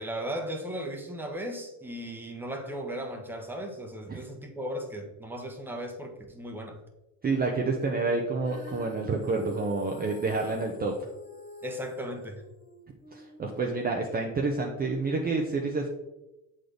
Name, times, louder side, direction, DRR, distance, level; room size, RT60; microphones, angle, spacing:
voice 1, 0.0-6.8 11.6-12.4, equal, 5° right, 2 dB, 1.0 m, -36 dB
voice 2, 7.2-11.1 13.1-15.9, right 3 dB, 25° right, 0 dB, 0.7 m, -29 dB
Female singing, 8.4-14.7, left 1 dB, 20° left, 1.8 m, -47 dB
7.4 x 4.0 x 3.4 m, 0.98 s
supercardioid pair, 95°, 40 cm